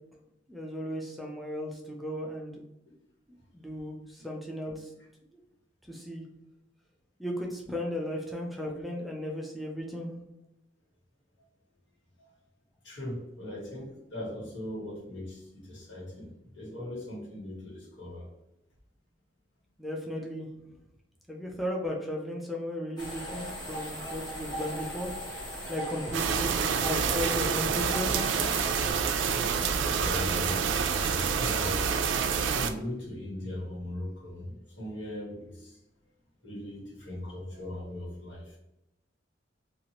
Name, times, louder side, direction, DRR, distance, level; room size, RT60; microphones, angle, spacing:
voice 1, 0.5-2.6 3.5-4.9 5.9-6.2 7.2-10.2 19.8-20.5 21.3-25.1 25.7-28.3, equal, ahead, -2 dB, 0.4 m, -35 dB
voice 2, 12.8-18.3 29.5-31.9 32.5-35.8 36.4-38.6, left 1 dB, 75° left, -4 dB, 1.3 m, -39 dB
sound 1, 23.0-28.9, equal, 20° left, 0.9 m, -38 dB
sound 2, 26.1-32.7, right 6 dB, 75° right, 0.3 m, -27 dB
2.9 x 2.4 x 2.8 m, 0.89 s
head